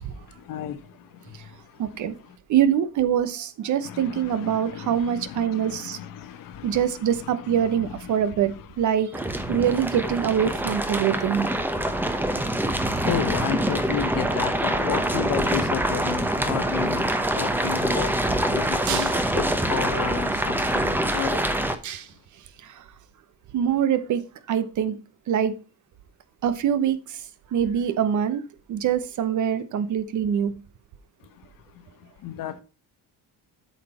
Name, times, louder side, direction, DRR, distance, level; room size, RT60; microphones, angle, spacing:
voice 1, 1.8-2.1 2.5-6.0 6.6-8.5 8.8-9.1 9.5-11.5 18.9-19.1 21.8-22.0 23.5-24.2 24.5-25.0 25.3-25.5 26.4-27.0 27.5-28.4 28.7-30.5, right 9 dB, 55° right, 1.0 m, -24 dB
voice 2, 3.8-8.2 13.0-17.1 17.4-18.1 18.5-21.4 32.2-32.6, left 10 dB, 65° left, 1.3 m, -32 dB
sound 1, 9.1-21.8, right 1 dB, 5° right, 0.9 m, -25 dB
8.5 x 5.7 x 4.2 m
cardioid pair, 130°, 36 cm